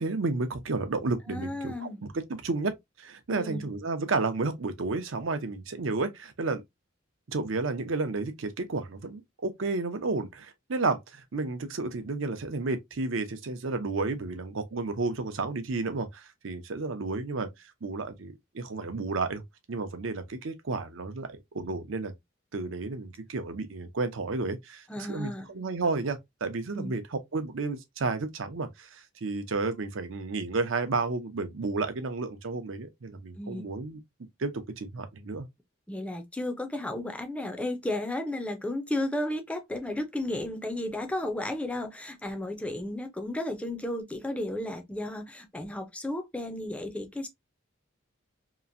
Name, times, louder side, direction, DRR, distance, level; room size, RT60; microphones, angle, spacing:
voice 1, 0.0-6.6 7.3-19.4 19.7-22.1 22.5-34.0 34.4-35.5, right 3 dB, 70° right, 0.6 m, -32 dB
voice 2, 1.3-2.0 3.3-3.7 24.9-25.5 26.7-27.0 33.4-33.7 35.9-47.3, left 1 dB, 5° left, 0.5 m, -33 dB
2.9 x 2.5 x 2.5 m
head